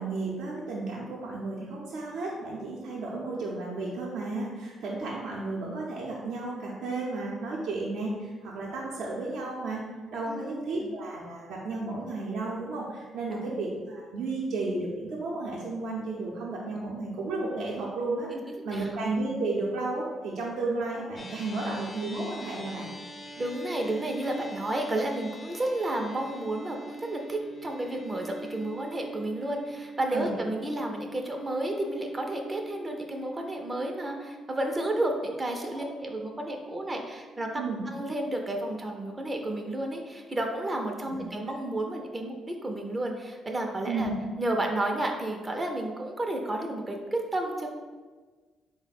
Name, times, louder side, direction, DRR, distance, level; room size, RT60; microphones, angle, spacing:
voice 1, 0.0-9.8 10.1-18.3 18.6-22.9 30.1-30.4 34.8-35.0 35.7-35.9 37.5-37.8 41.1-41.3 43.9-44.1, right 3 dB, 80° right, -4 dB, 0.6 m, -33 dB
voice 2, 10.3-10.9 13.3-13.6 18.5-18.9 23.4-37.5 37.9-44.1 44.4-47.7, right 1 dB, 25° right, 2 dB, 0.4 m, -32 dB
sound 1, 21.2-39.7, right 2 dB, 30° left, 0.5 m, -45 dB
3.9 x 2.1 x 4.1 m, 1.4 s
cardioid pair, 90°, 0 cm